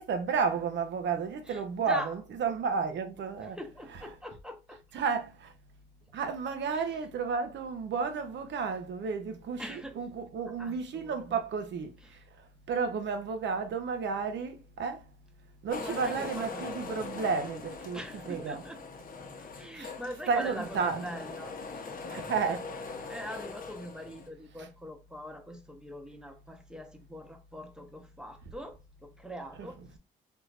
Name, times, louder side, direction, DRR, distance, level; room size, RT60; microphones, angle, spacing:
voice 1, 0.0-3.6 4.9-5.5 6.1-15.1 15.6-18.6 19.7-19.9 20.3-21.0 22.1-22.7 24.6-24.7 29.6-29.7, right 5 dB, 70° right, 0.8 m, -32 dB
voice 2, 1.5-2.1 3.5-4.8 6.7-6.9 9.6-10.0 10.5-11.4 12.0-12.2 15.8-16.7 17.9-18.8 19.4-22.0 22.4-22.6 23.1-30.0, equal, 5° right, 0.9 m, -43 dB
sound 1, 15.7-24.3, left 4 dB, 45° left, 0.8 m, -41 dB
3.6 x 2.9 x 2.4 m
supercardioid pair, 65°, 19 cm